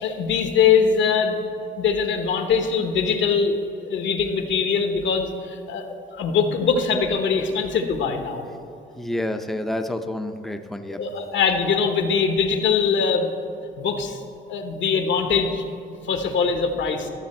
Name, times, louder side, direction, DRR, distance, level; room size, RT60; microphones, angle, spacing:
voice 1, 0.0-1.4 1.8-8.4 11.0-13.3 13.8-14.2 14.5-15.6 16.0-17.1, left 6 dB, 70° left, 6 dB, 1.1 m, -22 dB
voice 2, 9.0-11.0, left 1 dB, ahead, 7 dB, 0.5 m, -28 dB
13.0 x 7.2 x 4.3 m, 2.7 s
cardioid pair, 90°, 20 cm